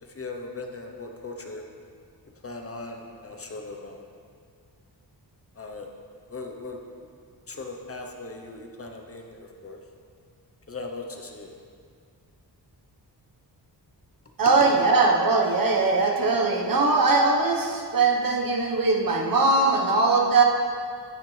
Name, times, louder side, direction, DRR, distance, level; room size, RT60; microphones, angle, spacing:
voice 1, 0.1-1.6 2.4-4.0 5.6-5.9 6.3-6.8 7.5-9.8 10.7-11.5, left 3 dB, 35° left, 2 dB, 0.8 m, -38 dB
voice 2, 14.4-20.4, right 3 dB, 55° right, 0 dB, 1.2 m, -21 dB
10.5 x 8.7 x 3.3 m, 2.1 s
wide cardioid pair, 125°, 41 cm